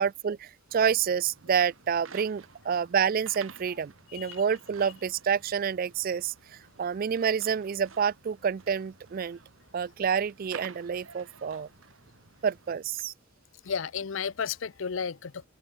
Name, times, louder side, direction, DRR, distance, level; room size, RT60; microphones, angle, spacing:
voice 1, 0.0-9.4 9.7-11.7 12.4-13.1, right 7 dB, 45° right, 0.3 m, -28 dB
sound 1, 0.7-12.8, right 5 dB, 80° right, 2.7 m, -52 dB
voice 2, 13.7-15.5, left 6 dB, 70° left, 0.6 m, -33 dB
open air
head